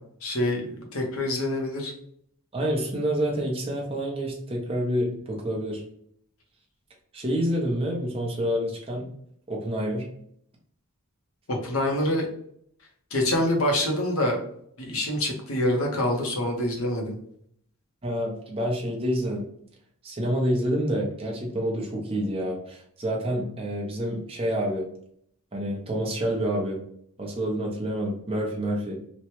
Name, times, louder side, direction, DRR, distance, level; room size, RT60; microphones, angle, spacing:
voice 1, 0.2-1.9 11.5-12.2 13.1-14.4 14.8-17.2, left 1 dB, 70° left, 1 dB, 0.8 m, -26 dB
voice 2, 2.5-5.8 7.1-9.1 9.5-10.1 18.0-19.4 20.0-24.8 25.5-26.8 27.2-29.0, equal, 25° right, -1 dB, 0.6 m, -28 dB
3.0 x 2.2 x 2.9 m, 0.67 s
head